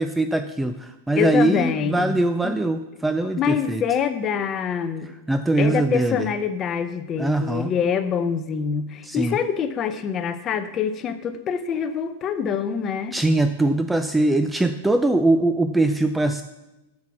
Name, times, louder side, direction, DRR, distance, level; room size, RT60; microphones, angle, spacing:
voice 1, 0.0-3.8 5.3-6.3 7.2-7.7 9.0-9.4 13.1-16.4, right 2 dB, 5° right, 9 dB, 0.3 m, -22 dB
voice 2, 1.2-2.2 2.4-2.6 3.4-5.1 5.6-13.2, left 7 dB, 25° left, 10 dB, 0.7 m, -25 dB
7.6 x 7.4 x 6.1 m, 0.99 s
supercardioid pair, 155°, 0 cm